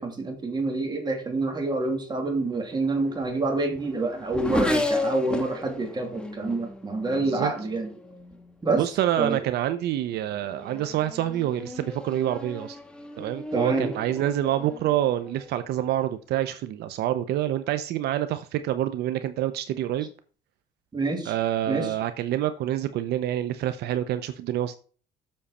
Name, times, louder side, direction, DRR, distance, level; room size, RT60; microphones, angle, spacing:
voice 1, 0.0-7.9 8.6-8.8 9.2-9.4 13.5-13.9 20.9-21.4 21.7-21.9, right 3 dB, 25° right, 3 dB, 2.9 m, -27 dB
Race car auto racing / Accelerating revving vroom, 2.7-8.5 9.4-9.7 10.2-16.1, left 1 dB, 5° left, 1.6 m, -34 dB
voice 2, 7.1-7.5 8.8-12.8 13.2-20.1 21.3-24.7, right 12 dB, 75° right, 11 dB, 0.8 m, -27 dB
7.6 x 6.8 x 4.3 m, 0.39 s
cardioid pair, 110°, 17 cm